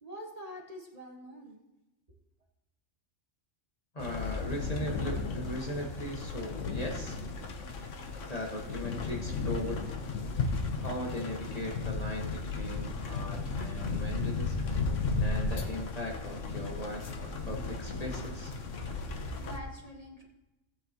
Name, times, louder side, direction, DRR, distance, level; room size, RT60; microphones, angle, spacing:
voice 1, 0.0-1.6 19.4-20.3, equal, 30° right, 0 dB, 1.3 m, -45 dB
voice 2, 3.9-7.2 8.3-9.8 10.8-14.7 15.2-18.5, equal, 35° left, -1 dB, 1.5 m, -38 dB
sound 1, 4.0-19.6, left 4 dB, 85° left, 1.3 m, -35 dB
16.0 x 8.6 x 2.9 m, 0.99 s
omnidirectional pair, 1.2 m